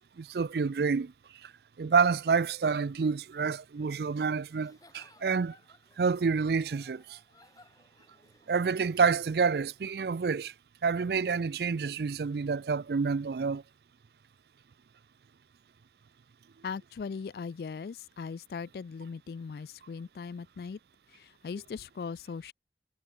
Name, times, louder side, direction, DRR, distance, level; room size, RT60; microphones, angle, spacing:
voice 1, 0.2-1.1 1.4-1.5 1.8-5.6 6.0-7.2 8.5-10.5 10.8-13.6, right 5 dB, 65° right, 0.4 m, -28 dB
Giggle / Chuckle chortle, 4.5-10.0, left 2 dB, 20° left, 8.0 m, -62 dB
voice 2, 16.6-20.8 21.1-22.5, left 5 dB, 60° left, 0.3 m, -39 dB
head